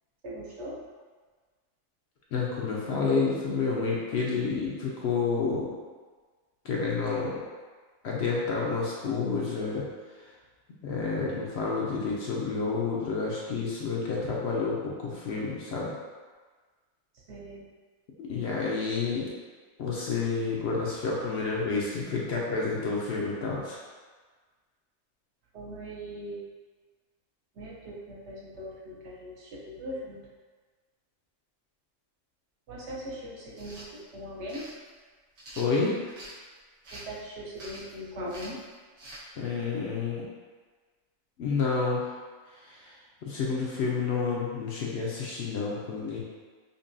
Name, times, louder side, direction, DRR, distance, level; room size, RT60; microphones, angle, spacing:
voice 1, 0.2-0.9 17.3-17.7 25.5-26.5 27.6-30.2 32.7-34.7 36.9-38.6, equal, 65° right, -4 dB, 0.9 m, -40 dB
voice 2, 2.3-5.7 6.6-7.4 8.0-9.8 10.8-15.9 18.2-19.3 19.8-23.8 35.6-36.1 39.4-40.3 41.4-42.2 42.6-42.9 43.2-46.2, left 4 dB, 65° left, -4 dB, 0.8 m, -29 dB
sound 1, 33.5-33.9 34.5-34.7 35.4-36.4 36.8-37.2 37.6-37.9 38.3-38.6 39.0-39.2, right 1 dB, 80° right, 1.3 m, -45 dB
5.3 x 2.2 x 2.5 m, 1.4 s
omnidirectional pair, 1.4 m